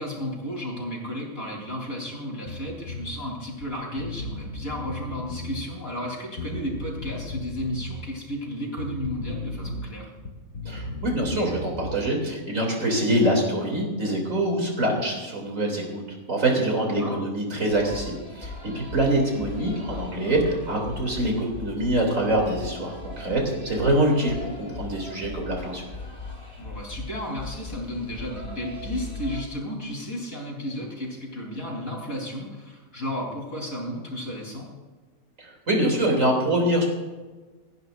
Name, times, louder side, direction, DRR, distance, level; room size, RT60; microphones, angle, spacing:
voice 1, 0.0-10.1 17.0-17.2 26.6-34.7, left 1 dB, 75° left, -1 dB, 4.1 m, -33 dB
Bass guitar, 2.5-3.1 3.6-3.7 4.0-5.6 6.4-8.0 8.8-9.9 10.2-12.0, left 1 dB, 90° left, 2.1 m, -35 dB
voice 2, 10.6-16.0 16.3-25.8 35.4-36.9, right 1 dB, 65° right, 0 dB, 3.3 m, -25 dB
sound 1, 17.7-29.4, left 2 dB, 20° left, 3.3 m, -39 dB
27.5 x 10.5 x 2.6 m, 1.3 s
omnidirectional pair, 1.5 m